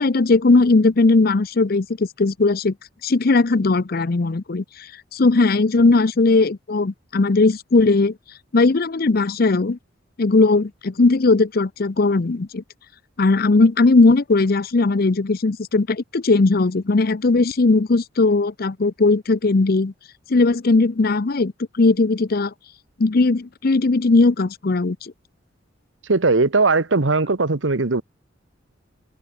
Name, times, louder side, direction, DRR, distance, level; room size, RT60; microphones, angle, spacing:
voice 1, 0.0-2.7 3.0-4.9 5.1-8.2 8.5-9.8 10.2-12.6 13.2-19.9 20.3-22.5 23.0-25.1, left 3 dB, 50° left, 0.6 m, -18 dB
voice 2, 26.1-28.0, right 3 dB, 75° right, 1.2 m, -19 dB
head